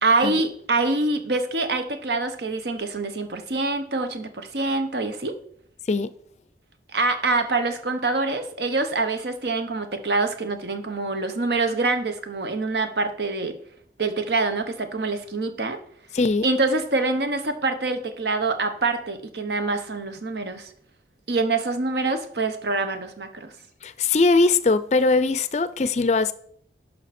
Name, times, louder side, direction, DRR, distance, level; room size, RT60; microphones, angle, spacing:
voice 1, 0.0-5.4 6.9-13.5 14.0-15.8 16.4-20.7 21.3-23.5, right 3 dB, 70° right, 1.0 m, -25 dB
voice 2, 16.1-16.4 23.8-26.3, left 3 dB, 40° left, 0.4 m, -21 dB
10.5 x 5.9 x 4.2 m
head